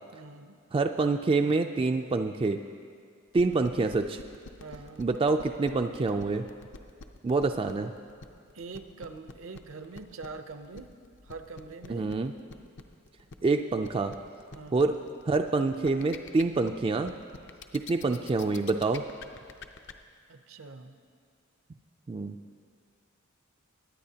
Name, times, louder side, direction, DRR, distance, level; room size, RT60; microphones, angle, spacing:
voice 1, 0.1-0.6 3.6-3.7 4.6-5.1 8.5-10.9 11.2-12.1 14.5-14.8 20.3-21.0, right 3 dB, 70° right, 9 dB, 0.6 m, -44 dB
voice 2, 0.7-2.6 3.3-4.2 5.0-6.4 7.2-7.9 11.9-12.3 13.4-14.1 14.7-14.9 15.3-17.1 17.7-19.0 22.1-22.4, right 3 dB, 25° right, 6 dB, 0.3 m, -26 dB
sound 1, 3.3-19.9, left 4 dB, 60° left, 0.6 m, -46 dB
22.0 x 9.6 x 2.8 m, 2.2 s
head